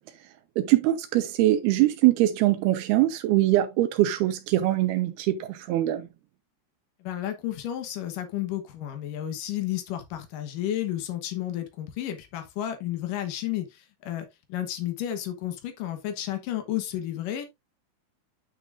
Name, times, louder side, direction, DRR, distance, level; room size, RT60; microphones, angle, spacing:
voice 1, 0.6-6.1, right 15 dB, 90° right, 2.2 m, -23 dB
voice 2, 7.0-17.5, left 12 dB, 80° left, 1.9 m, -32 dB
10.0 x 6.2 x 2.5 m
omnidirectional pair, 5.7 m